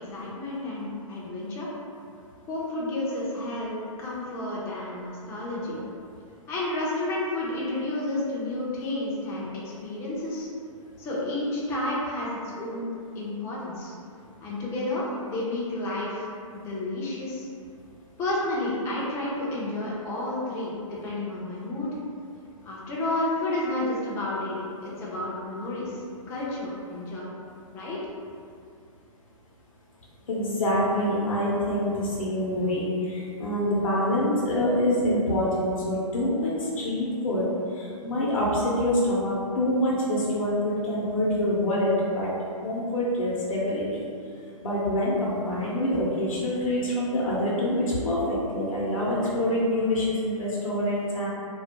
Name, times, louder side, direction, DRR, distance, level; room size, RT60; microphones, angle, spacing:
voice 1, 0.0-1.7 2.5-5.8 6.5-9.5 9.8-10.5 11.0-13.9 14.4-17.5 18.2-21.9 22.6-27.3 27.7-28.0, left 1 dB, 15° left, -7 dB, 0.3 m, -31 dB
voice 2, 30.3-37.5 37.7-42.3 42.6-44.0 44.6-51.3, left 1 dB, 70° left, -6 dB, 0.6 m, -26 dB
2.3 x 2.0 x 2.8 m, 2.4 s
hypercardioid pair, 135°, 18 cm